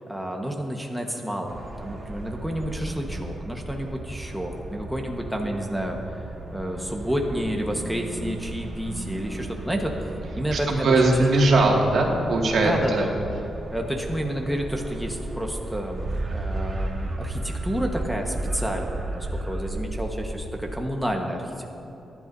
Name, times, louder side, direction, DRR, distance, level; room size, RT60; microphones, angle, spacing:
voice 1, 0.1-6.2 6.5-11.2 12.6-13.1 13.7-21.6, equal, ahead, 1 dB, 1.3 m, -30 dB
sound 1, 1.5-20.8, right 2 dB, 40° right, 1.4 m, -34 dB
voice 2, 10.5-13.1, right 2 dB, 70° right, -1 dB, 2.1 m, -20 dB
22.0 x 11.0 x 2.7 m, 3.0 s
cardioid pair, 90°, 0 cm